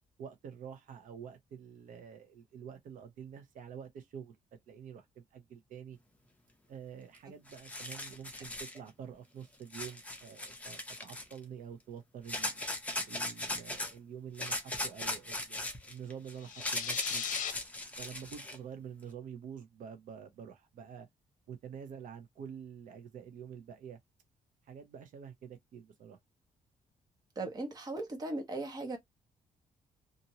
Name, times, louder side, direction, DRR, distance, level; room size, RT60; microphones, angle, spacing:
voice 1, 0.2-4.4 4.7-6.0 6.7-12.6 13.1-17.2 18.0-21.1 21.5-24.0 24.6-26.2, right 8 dB, 70° right, 0.7 m, -47 dB
sound 1, 7.2-7.3 7.5-8.8 9.7-11.4 12.3-13.9 14.4-18.6, left 1 dB, 10° left, 0.7 m, -38 dB
sound 2, 16.4-17.5, left 9 dB, 65° left, 0.6 m, -37 dB
voice 2, 27.3-29.0, right 2 dB, 25° right, 1.0 m, -38 dB
2.9 x 2.6 x 2.7 m
cardioid pair, 165°, 14 cm